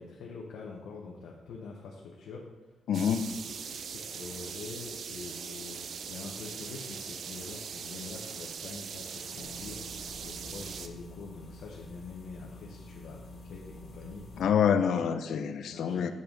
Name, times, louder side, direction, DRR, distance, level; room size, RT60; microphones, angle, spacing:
voice 1, 0.0-2.5 3.3-9.8 10.2-14.4 14.8-15.0 15.4-16.1, left 4 dB, 85° left, -2 dB, 0.9 m, -45 dB
voice 2, 2.9-3.3 14.4-16.1, left 7 dB, 65° left, 9 dB, 0.5 m, -26 dB
sound 1, 2.9-10.9, right 6 dB, 50° right, 0.5 m, -41 dB
sound 2, 9.4-14.4, left 1 dB, 35° left, 1.0 m, -48 dB
7.5 x 7.0 x 3.8 m, 1.2 s
wide cardioid pair, 175°, 0 cm